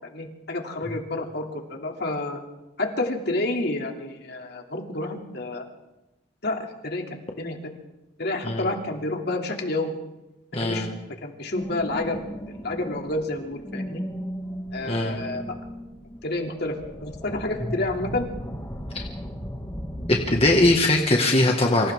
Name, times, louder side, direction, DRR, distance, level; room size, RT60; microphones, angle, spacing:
voice 1, 0.0-2.4 2.8-5.6 6.4-7.7 8.2-9.9 10.6-10.9 11.2-12.2 12.6-14.0 14.7-15.4 16.2-18.2, left 2 dB, 55° left, 2 dB, 2.8 m, -29 dB
voice 2, 10.5-10.9 14.9-15.2 18.9-19.0 20.1-21.9, left 2 dB, 30° left, 0 dB, 1.9 m, -21 dB
sound 1, 11.5-20.8, equal, 15° left, 2.2 m, -36 dB
28.5 x 26.0 x 3.7 m, 0.95 s
head